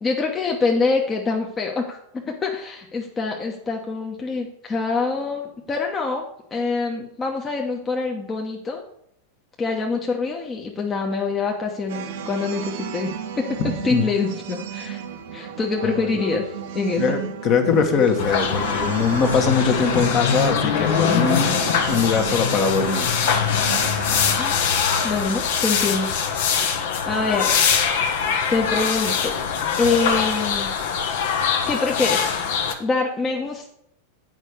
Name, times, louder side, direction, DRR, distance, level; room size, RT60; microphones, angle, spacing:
voice 1, 0.0-8.8 9.6-13.6 13.8-15.0 15.3-17.1 24.4-24.7 25.0-26.1 27.1-27.5 28.0-29.4 29.8-30.9 31.7-32.4 32.8-33.7, left 4 dB, 20° left, 1 dB, 1.1 m, -25 dB
sound 1, 11.9-24.5, right 8 dB, 55° right, 0.9 m, -33 dB
voice 2, 13.6-14.0 17.0-21.5 21.9-23.1, left 5 dB, 35° left, 5 dB, 1.4 m, -21 dB
sound 2, 18.2-32.7, left 7 dB, 55° left, 1.0 m, -23 dB
9.2 x 5.4 x 6.5 m, 0.73 s
figure-of-eight pair, 90°, 0 cm